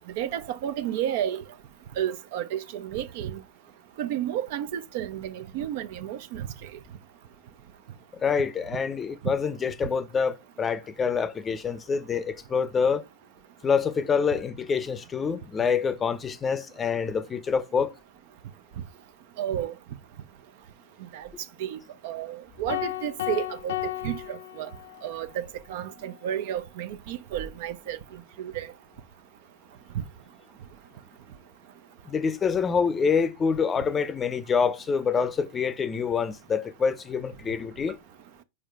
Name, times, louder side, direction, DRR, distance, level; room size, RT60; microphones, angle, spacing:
voice 1, 0.2-1.4 2.0-3.4 4.0-6.5 19.4-19.7 21.1-21.3 21.6-21.8 22.0-23.8 24.0-24.7 25.0-25.3 25.7-28.0 28.4-28.7 29.9-30.0, right 10 dB, 60° right, 0.5 m, -31 dB
voice 2, 8.2-13.0 13.6-17.9 32.1-38.0, left 6 dB, 25° left, 0.6 m, -26 dB
sound 1, 22.7-25.2, left 16 dB, 75° left, 0.4 m, -33 dB
4.7 x 4.5 x 2.4 m
hypercardioid pair, 95°, 0 cm